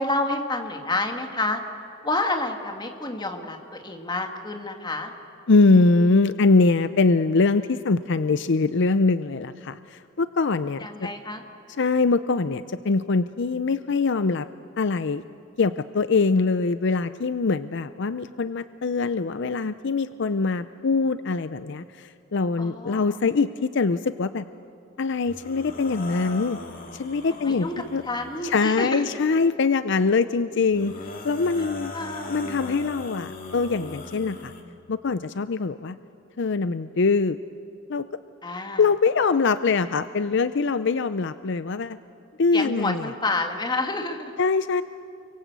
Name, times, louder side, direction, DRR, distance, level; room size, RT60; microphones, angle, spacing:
voice 1, 0.0-1.6 2.0-5.1 10.8-11.4 22.6-23.2 27.3-27.7 28.0-29.2 31.6-31.7 31.9-32.3 38.4-38.8 42.5-44.3, left 2 dB, 25° left, 4 dB, 2.1 m, -29 dB
voice 2, 5.5-11.1 11.8-14.5 14.8-15.2 15.6-24.4 25.0-26.6 26.9-28.0 28.4-30.9 31.2-31.9 32.3-34.5 34.9-36.0 36.4-37.4 37.9-38.1 38.8-42.0 42.4-43.1 44.4-44.8, left 4 dB, 65° left, 13 dB, 0.6 m, -23 dB
sound 1, 25.3-28.7 30.7-34.6, left 2 dB, 45° left, 2.4 m, -39 dB
29.5 x 23.5 x 8.2 m, 2.6 s
head